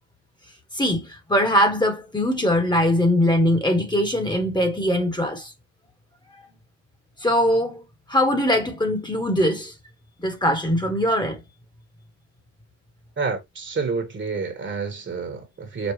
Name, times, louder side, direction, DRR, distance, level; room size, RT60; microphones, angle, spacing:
voice 1, 0.7-5.5 7.2-7.8 8.1-9.7 10.2-11.4, equal, 15° left, 1.3 m, -21 dB
voice 2, 13.2-15.9, right 4 dB, 40° right, 1.4 m, -28 dB
5.3 x 2.4 x 3.0 m
cardioid pair, 90°, 30 cm